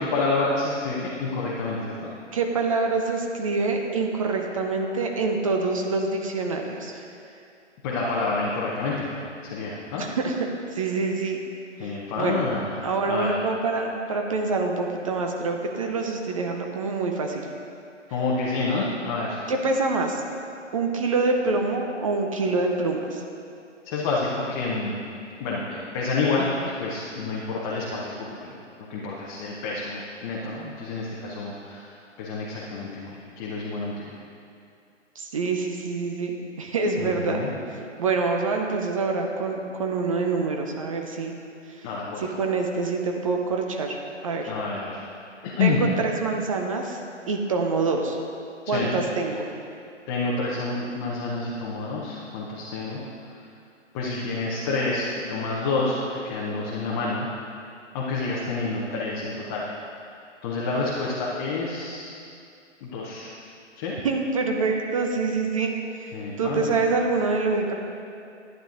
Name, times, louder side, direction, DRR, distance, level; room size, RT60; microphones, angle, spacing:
voice 1, 0.0-1.9 7.8-9.1 9.4-10.0 11.8-13.3 18.1-19.4 23.8-25.0 25.4-28.1 28.4-28.5 28.9-34.1 37.0-37.5 41.8-42.3 44.5-45.0 45.4-45.9 48.6-49.0 50.1-53.0 53.9-56.0 56.2-57.3 57.9-59.7 60.4-62.1 62.8-63.3 63.8-64.0 66.1-66.8, left 3 dB, 20° left, -5 dB, 0.7 m, -28 dB
voice 2, 2.3-7.1 10.0-10.5 10.7-11.4 11.8-12.4 12.8-17.5 18.1-18.2 19.5-20.2 20.7-23.2 35.2-37.4 37.7-41.4 41.7-41.9 42.2-44.0 44.2-44.5 45.6-47.0 47.3-48.2 48.7-49.5 64.0-67.7, right 3 dB, 30° right, 2 dB, 0.5 m, -26 dB
11.5 x 9.0 x 2.5 m, 2.5 s
figure-of-eight pair, 130°, 36 cm